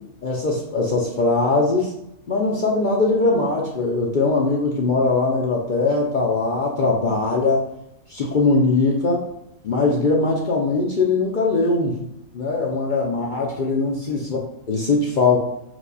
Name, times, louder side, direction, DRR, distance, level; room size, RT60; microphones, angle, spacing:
voice 1, 0.2-1.9 2.3-7.7 8.1-9.3 9.6-12.0 12.3-15.4, left 3 dB, 55° left, -1 dB, 0.5 m, -21 dB
4.7 x 2.2 x 3.9 m, 0.79 s
omnidirectional pair, 1.4 m